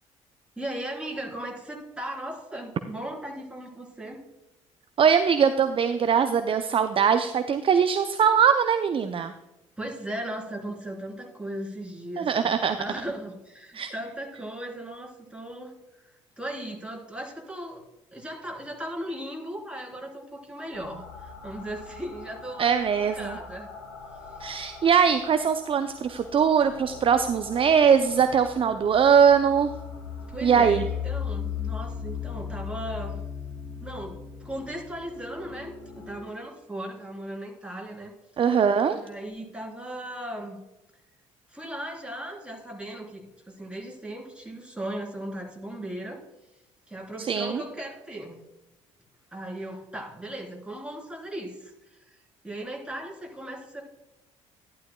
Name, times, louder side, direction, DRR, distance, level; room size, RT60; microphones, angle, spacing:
voice 1, 0.6-4.2 9.8-15.7 16.0-17.8 18.1-22.7 23.1-23.7 30.3-33.2 33.8-38.1 38.9-40.6 41.5-46.2 46.9-48.4 49.3-52.0 52.4-53.8, right 1 dB, 5° right, -1 dB, 3.7 m, -37 dB
voice 2, 5.0-9.3 12.2-12.8 13.7-13.9 22.6-23.4 24.4-29.7 30.4-30.8 38.4-39.0 47.3-47.6, right 7 dB, 35° right, 9 dB, 0.5 m, -21 dB
sound 1, 20.7-36.2, left 7 dB, 80° left, 1.7 m, -38 dB
11.5 x 11.5 x 2.3 m, 0.96 s
figure-of-eight pair, 50°, 16 cm